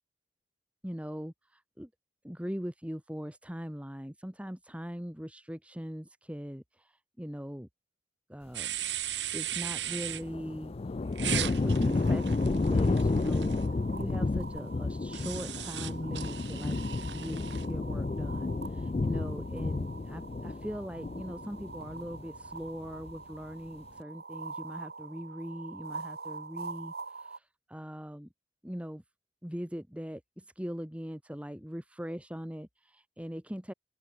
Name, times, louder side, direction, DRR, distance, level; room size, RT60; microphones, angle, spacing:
voice 1, 0.8-1.9 2.2-7.7 8.3-8.8 9.3-10.7 11.2-13.7 13.9-16.8 17.1-28.3 28.6-29.0 29.4-33.7, equal, 5° right, 1.8 m, -41 dB
sound 1, 8.5-10.2 11.2-13.6 15.1-17.7, right 12 dB, 85° right, 2.2 m, -37 dB
sound 2, 9.6-22.4 22.7-23.3, left 3 dB, 35° left, 0.4 m, -31 dB
sound 3, 11.8-27.4, right 4 dB, 65° right, 1.9 m, -46 dB
open air
head